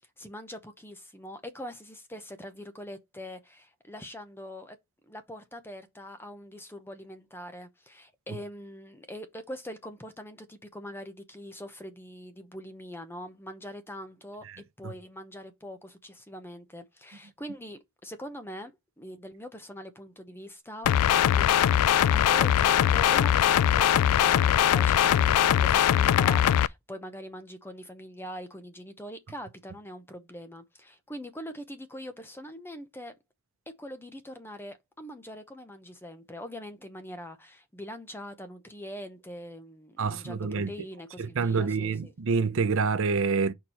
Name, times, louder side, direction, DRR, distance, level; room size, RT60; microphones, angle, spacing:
voice 1, 0.2-4.8 5.0-14.5 14.8-21.6 22.0-33.2 33.7-42.1, equal, 10° left, 0.8 m, -43 dB
sound 1, 20.9-26.7, left 10 dB, 90° left, 0.3 m, -21 dB
voice 2, 40.0-40.7 41.2-43.5, right 4 dB, 65° right, 0.6 m, -27 dB
4.7 x 4.4 x 5.6 m
head